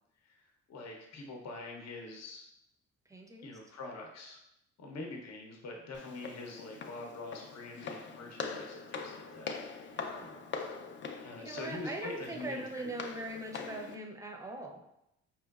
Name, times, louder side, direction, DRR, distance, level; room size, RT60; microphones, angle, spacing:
voice 1, 0.2-2.4 3.4-4.4 4.8-10.1 11.2-13.0, left 2 dB, 60° left, 1 dB, 0.8 m, -45 dB
voice 2, 3.1-3.6 9.9-10.5 11.2-14.9, right 2 dB, 10° right, 2 dB, 0.5 m, -42 dB
Walk footsteps, 5.9-14.0, left 5 dB, 40° left, 0.4 m, -43 dB
4.5 x 3.1 x 2.3 m, 0.82 s
cardioid pair, 90°, 30 cm